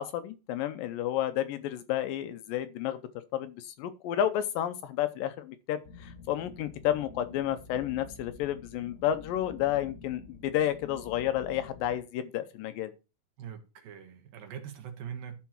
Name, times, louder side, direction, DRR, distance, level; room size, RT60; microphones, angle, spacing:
voice 1, 0.0-3.0 3.3-12.9, left 11 dB, 80° left, 2.1 m, -31 dB
sound 1, 5.8-12.0, left 4 dB, 40° left, 1.3 m, -48 dB
voice 2, 13.4-15.4, right 8 dB, 70° right, 3.1 m, -42 dB
13.0 x 4.6 x 4.5 m
omnidirectional pair, 4.5 m